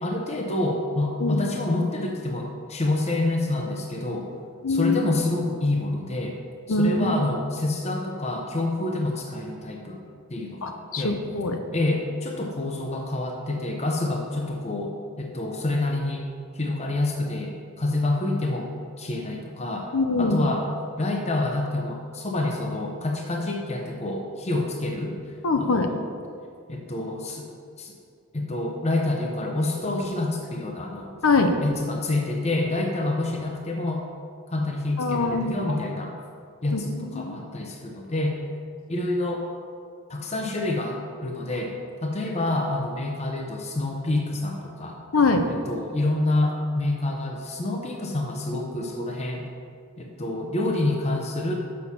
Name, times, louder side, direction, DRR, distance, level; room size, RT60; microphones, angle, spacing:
voice 1, 0.0-4.3 4.7-6.4 6.7-10.0 10.3-11.2 11.7-16.3 16.5-18.7 19.0-19.9 20.2-20.7 21.0-25.2 25.6-26.0 26.7-27.5 27.8-27.9 28.3-31.2 31.6-34.0 34.5-36.1 36.6-38.4 38.9-39.5 40.1-45.0 45.5-49.5 50.0-51.5, left 2 dB, 30° left, 1 dB, 0.7 m, -27 dB
voice 2, 4.6-5.0 6.7-7.2 10.6-11.6 19.9-20.5 25.4-25.9 31.2-31.5 35.0-35.8 36.7-37.4 45.1-45.5, left 3 dB, 75° left, 6 dB, 0.8 m, -23 dB
6.8 x 6.5 x 5.6 m, 2.3 s
head